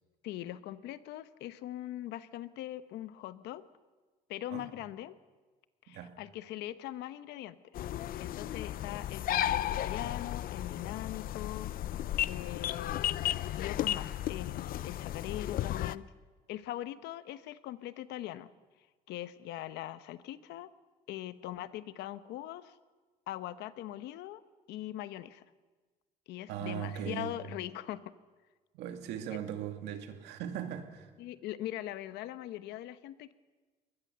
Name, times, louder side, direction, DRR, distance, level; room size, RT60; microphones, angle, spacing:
voice 1, 0.2-3.6 4.3-5.2 5.8-7.6 8.2-11.7 12.3-13.2 13.6-16.0 16.5-18.5 19.1-20.7 21.1-22.7 23.3-24.4 24.7-25.4 26.3-28.0 31.2-33.3, left 13 dB, 85° left, 13 dB, 1.0 m, -41 dB
voice 2, 5.9-6.2 12.6-12.7 26.5-27.4 28.7-31.1, right 9 dB, 85° right, 5 dB, 2.3 m, -39 dB
sound 1, 7.8-16.0, left 12 dB, 60° left, 0.6 m, -34 dB
22.0 x 19.5 x 6.8 m, 1.3 s
cardioid pair, 110°, 17 cm